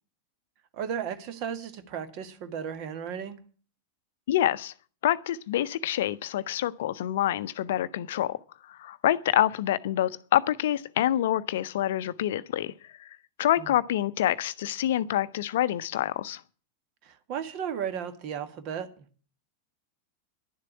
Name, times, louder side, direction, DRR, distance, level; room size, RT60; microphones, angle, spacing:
voice 1, 0.7-3.4 13.6-13.7 17.0-19.1, right 8 dB, 45° right, 1.6 m, -35 dB
voice 2, 4.3-4.7 5.0-8.4 8.7-13.1 13.4-16.4, left 12 dB, 55° left, 0.6 m, -27 dB
11.0 x 7.5 x 9.7 m
figure-of-eight pair, 90°, 0 cm